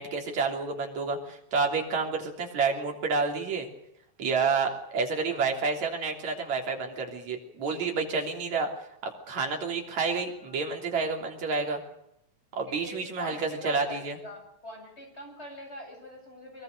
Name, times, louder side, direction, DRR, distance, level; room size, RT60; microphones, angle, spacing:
voice 1, 0.0-3.7 4.2-8.7 9.0-11.8 12.5-13.4 13.6-14.2, right 4 dB, 65° right, 2 dB, 4.5 m, -29 dB
voice 2, 10.4-10.9 12.7-16.6, left 1 dB, 20° left, 2 dB, 8.1 m, -43 dB
23.0 x 22.0 x 6.6 m, 0.79 s
omnidirectional pair, 3.5 m